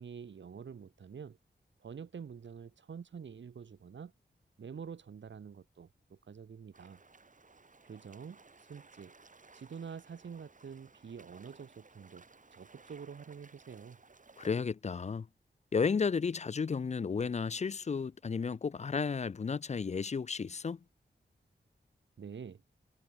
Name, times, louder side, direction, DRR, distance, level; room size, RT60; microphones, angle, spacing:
voice 1, 0.0-1.4 1.8-4.1 4.6-7.0 7.8-9.1 9.5-12.2 12.5-14.0 22.2-22.6, right 6 dB, 90° right, 1.9 m, -47 dB
sound 1, 6.7-14.6, right 3 dB, 45° right, 2.4 m, -59 dB
voice 2, 14.4-15.3 15.7-20.8, left 5 dB, 40° left, 0.4 m, -33 dB
wide cardioid pair, 70°, 18 cm